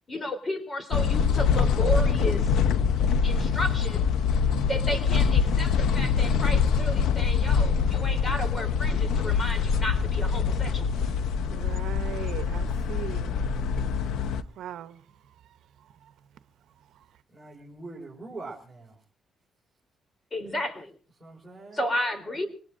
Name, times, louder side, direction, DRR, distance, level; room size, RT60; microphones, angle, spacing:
voice 1, 0.1-2.6 3.2-4.1 4.7-10.9 20.3-20.9 21.7-22.5, left 1 dB, 30° left, 3.7 m, -32 dB
sound 1, 0.9-14.4, left 6 dB, 80° left, 0.8 m, -24 dB
voice 2, 11.5-13.4 14.6-14.9, right 11 dB, 80° right, 0.8 m, -38 dB
voice 3, 17.3-19.0 21.2-21.8, right 3 dB, 10° right, 5.0 m, -43 dB
25.5 x 19.0 x 2.6 m
cardioid pair, 90°, 0 cm